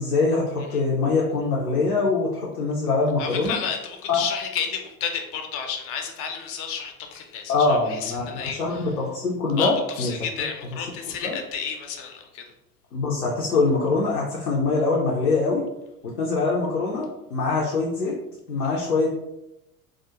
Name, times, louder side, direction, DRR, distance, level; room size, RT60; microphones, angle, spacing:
voice 1, 0.0-3.6 4.1-4.2 7.5-10.1 11.2-11.4 12.9-15.7 16.0-18.1 18.5-19.2, left 3 dB, 85° left, -4 dB, 0.6 m, -23 dB
voice 2, 3.2-8.8 9.6-9.7 10.0-12.4, left 7 dB, 35° left, 5 dB, 0.4 m, -31 dB
2.3 x 2.1 x 2.7 m, 0.88 s
figure-of-eight pair, 70°, 43 cm